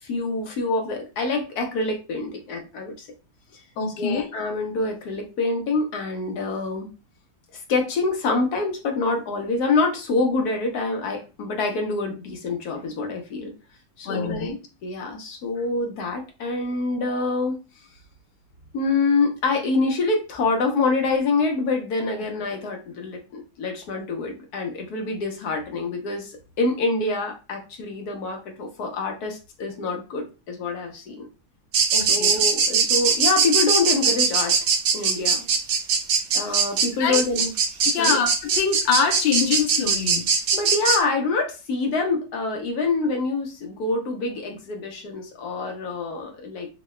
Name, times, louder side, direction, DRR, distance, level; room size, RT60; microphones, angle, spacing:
voice 1, 0.0-3.1 4.0-6.9 7.5-13.5 14.0-14.6 14.8-17.6 18.7-31.3 32.0-34.6 34.9-35.4 36.3-37.5 38.0-38.2 40.5-46.7, left 3 dB, 65° left, 3 dB, 1.1 m, -26 dB
voice 2, 3.8-4.2 14.1-14.6 31.9-32.4 37.0-37.2 37.9-40.3, left 6 dB, 80° left, 4 dB, 1.5 m, -24 dB
sound 1, 31.7-41.0, right 5 dB, 70° right, 1.2 m, -21 dB
3.7 x 2.2 x 3.1 m, 0.31 s
omnidirectional pair, 2.1 m